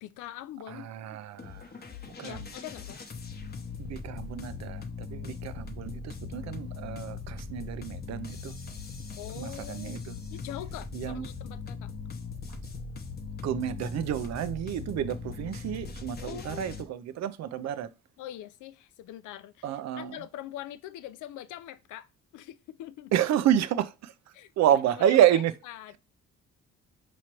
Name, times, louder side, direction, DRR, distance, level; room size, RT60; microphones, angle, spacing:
voice 1, 0.0-0.9 2.2-3.0 9.2-10.0 10.3-11.9 16.2-16.7 18.2-23.1 24.3-26.0, left 13 dB, 85° left, 0.5 m, -43 dB
voice 2, 0.7-1.6 2.2-2.4 3.8-8.5 9.4-10.2 10.9-11.3 13.4-17.9 19.6-20.2 23.1-24.1 24.6-25.5, right 10 dB, 60° right, 0.5 m, -29 dB
sound 1, 1.4-16.8, left 5 dB, 30° left, 0.8 m, -40 dB
4.8 x 3.0 x 2.9 m
cardioid pair, 90°, 30 cm